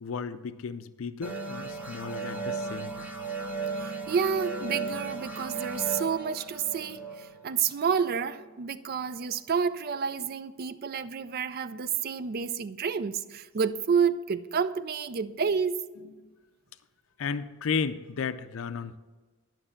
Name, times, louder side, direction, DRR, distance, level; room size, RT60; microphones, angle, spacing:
voice 1, 0.0-3.1 16.2-16.3 17.2-19.0, left 5 dB, 65° left, 0.4 m, -34 dB
sound 1, 1.2-8.5, right 4 dB, 10° right, 1.2 m, -36 dB
voice 2, 3.8-15.8, right 6 dB, 45° right, 0.4 m, -29 dB
11.0 x 6.0 x 5.6 m
head